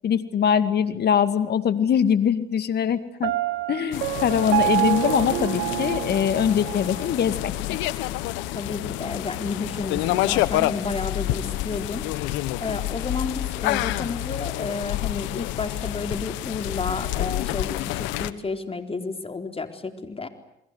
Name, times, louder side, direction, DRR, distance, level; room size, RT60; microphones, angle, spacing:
voice 1, 0.0-3.3 3.7-7.8, left 8 dB, 60° left, 11 dB, 2.2 m, -22 dB
Piano, 3.2-7.1, right 17 dB, 75° right, 1.2 m, -27 dB
sound 1, 3.9-18.3, left 16 dB, 85° left, 1.2 m, -28 dB
voice 2, 8.5-12.1 12.4-20.3, left 4 dB, 30° left, 6 dB, 4.1 m, -31 dB
30.0 x 22.0 x 8.2 m, 0.80 s
supercardioid pair, 60°, 19 cm